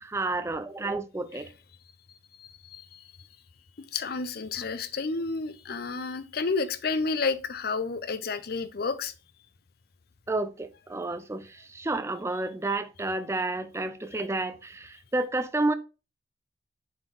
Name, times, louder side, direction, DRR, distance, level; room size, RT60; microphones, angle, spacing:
voice 1, 0.0-1.5 10.3-15.7, right 2 dB, 15° right, 0.4 m, -30 dB
voice 2, 2.4-3.0 3.9-9.1, left 4 dB, 55° left, 0.6 m, -31 dB
7.0 x 4.4 x 3.2 m
head